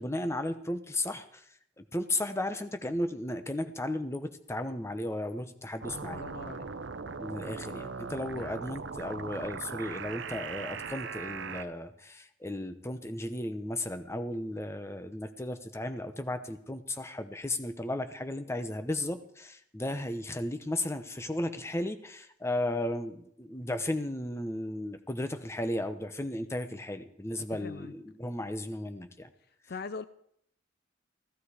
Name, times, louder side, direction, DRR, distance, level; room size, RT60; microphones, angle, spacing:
voice 1, 0.0-6.2 7.0-29.3, left 1 dB, 15° left, 9 dB, 0.8 m, -35 dB
sound 1, 5.8-11.6, right 5 dB, 65° right, 0.7 m, -39 dB
voice 2, 6.1-6.7 8.4-8.5 27.5-27.9 29.7-30.1, left 4 dB, 55° left, 14 dB, 0.5 m, -41 dB
15.0 x 14.5 x 4.9 m, 0.69 s
head